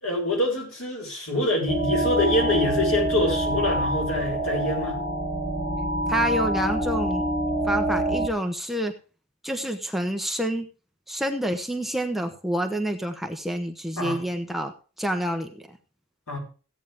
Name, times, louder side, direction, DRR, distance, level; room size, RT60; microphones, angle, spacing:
voice 1, 0.0-5.0 14.0-14.2 16.3-16.4, left 1 dB, 75° left, 1 dB, 6.6 m, -25 dB
sound 1, 1.7-8.3, right 1 dB, 45° left, 3.2 m, -26 dB
voice 2, 6.1-7.2 7.6-8.9 9.4-10.7 11.1-14.7 15.0-15.8, equal, ahead, 5 dB, 0.9 m, -28 dB
16.0 x 9.0 x 3.5 m, 0.36 s
head